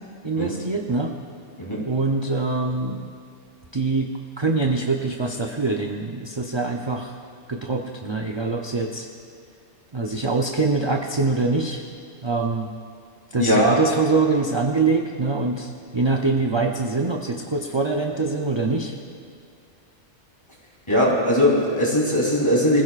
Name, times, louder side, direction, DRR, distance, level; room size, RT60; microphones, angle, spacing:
voice 1, 0.2-1.2 1.9-3.1 3.7-4.1 4.4-7.1 7.5-9.1 9.9-11.8 12.2-12.7 13.3-18.9, right 3 dB, 30° right, 1 dB, 0.6 m, -24 dB
voice 2, 13.4-13.8 20.9-22.8, equal, 25° left, -5 dB, 3.5 m, -20 dB
25.0 x 16.0 x 2.5 m, 2.3 s
omnidirectional pair, 1.2 m